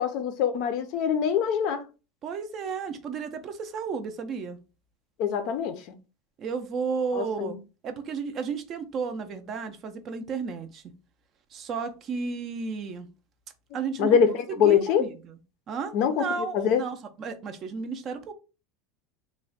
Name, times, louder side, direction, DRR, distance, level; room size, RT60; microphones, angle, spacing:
voice 1, 0.0-1.8 5.2-5.8 7.1-7.6 13.7-15.1 15.9-16.8, left 7 dB, 45° left, 0.4 m, -24 dB
voice 2, 2.2-4.6 6.4-7.6 7.8-10.8 11.5-13.1 13.7-14.1 14.6-15.3 15.7-18.3, right 5 dB, 30° right, 0.4 m, -33 dB
3.3 x 2.0 x 3.8 m
supercardioid pair, 170°, 0 cm